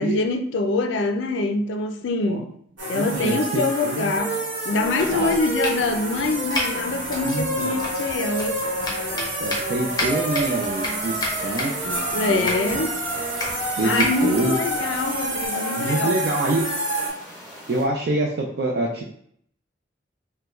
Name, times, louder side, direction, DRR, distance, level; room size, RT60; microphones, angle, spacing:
voice 1, 0.0-2.5 2.9-8.7 12.1-13.0 13.8-16.1, left 3 dB, 85° left, 0.4 m, -25 dB
sound 1, 2.8-17.1, right 1 dB, 80° right, 1.2 m, -28 dB
voice 2, 2.9-4.1 5.1-5.4 7.2-7.8 8.8-12.5 12.8-12.9 13.8-14.6 15.8-16.6 17.7-19.1, right 2 dB, 55° right, 0.4 m, -26 dB
Domestic sounds home sounds, 4.8-15.5, left 1 dB, 20° left, 0.6 m, -33 dB
sound 2, 9.9-17.9, equal, 5° right, 1.0 m, -42 dB
3.4 x 2.2 x 3.0 m
head